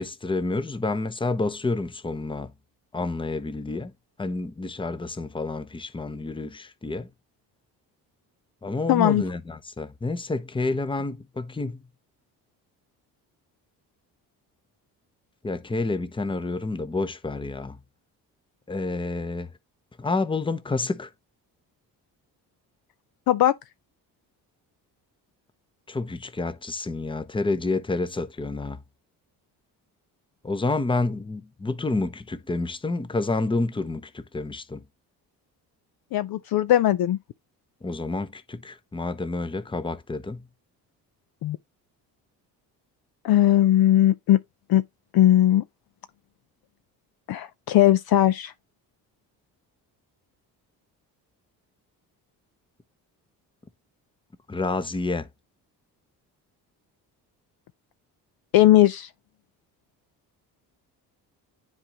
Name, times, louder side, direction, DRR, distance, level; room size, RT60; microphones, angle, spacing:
voice 1, 0.0-2.5 2.9-3.9 4.2-7.1 8.6-11.8 15.4-17.8 18.7-19.5 20.0-21.1 25.9-28.8 30.4-34.8 37.8-40.4 54.5-55.3, left 3 dB, 10° left, 0.7 m, -29 dB
voice 2, 8.9-9.2 23.3-23.5 36.1-37.2 41.4-41.6 43.2-44.4 44.7-44.8 45.1-45.6 47.3-48.5 58.5-59.1, left 13 dB, 55° left, 0.5 m, -19 dB
9.9 x 3.8 x 2.9 m
hypercardioid pair, 50°, 46 cm